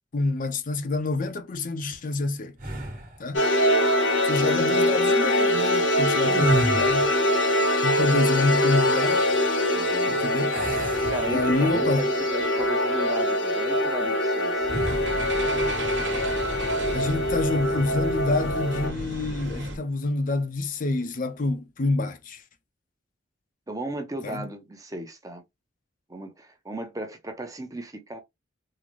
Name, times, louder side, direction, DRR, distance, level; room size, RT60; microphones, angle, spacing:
voice 1, 0.1-2.5 3.2-3.4 4.2-7.1 7.8-9.2 10.1-10.6 11.3-12.1 16.9-22.4 24.2-24.4, left 2 dB, 45° left, 0.5 m, -27 dB
sound 1, 2.6-3.2 6.1-7.2 10.5-11.9 12.4-12.6 14.6-15.1, right 1 dB, 40° right, 1.2 m, -30 dB
sound 2, 3.3-18.9, left 1 dB, 75° left, 0.9 m, -23 dB
voice 2, 9.7-10.2 11.1-14.7 23.7-25.4 26.1-28.2, right 2 dB, 20° right, 0.6 m, -35 dB
sound 3, 14.7-19.8, right 1 dB, 70° right, 1.2 m, -34 dB
3.8 x 2.0 x 3.0 m
head